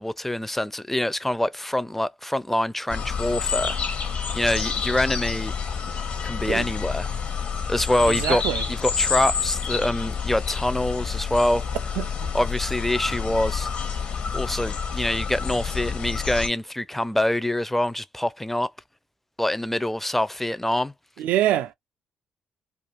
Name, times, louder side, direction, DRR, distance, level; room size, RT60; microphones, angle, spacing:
voice 1, 0.0-3.8 4.3-5.5 6.2-7.1 7.7-8.4 8.7-11.6 12.3-13.7 14.3-18.7 19.4-20.9, left 1 dB, 10° left, 0.4 m, -25 dB
sound 1, 2.9-16.5, left 6 dB, 60° left, 0.9 m, -28 dB
voice 2, 8.1-8.7 12.0-12.3 21.2-21.7, right 12 dB, 70° right, 0.4 m, -25 dB
2.4 x 2.4 x 3.1 m
hypercardioid pair, 45°, 3 cm